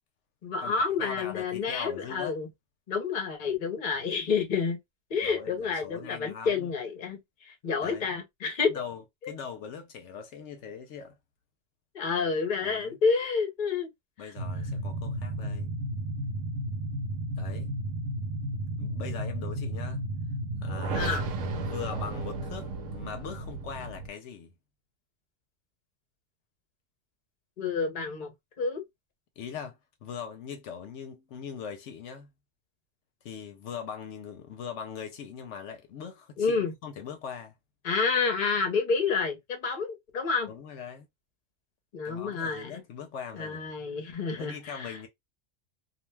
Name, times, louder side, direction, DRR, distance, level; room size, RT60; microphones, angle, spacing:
voice 1, 0.4-2.5 2.9-4.8 5.1-7.2 7.4-8.8 9.2-9.3 11.9-13.9 14.2-14.3 20.9-21.2 27.6-28.8 36.4-36.7 37.8-40.5 41.9-42.8 43.3-45.0, left 5 dB, 45° left, 0.8 m, -29 dB
voice 2, 1.0-2.4 5.2-6.7 7.8-8.1 8.7-9.0 9.3-11.1 12.6-13.0 14.2-15.7 17.4-17.7 18.8-20.0 20.6-21.1 21.6-24.5 29.4-32.3 33.2-37.5 40.5-41.1 42.0-43.7 44.3-45.1, left 7 dB, 75° left, 0.9 m, -41 dB
sound 1, 14.4-24.1, right 2 dB, 80° right, 1.0 m, -33 dB
2.5 x 2.2 x 3.1 m
omnidirectional pair, 1.3 m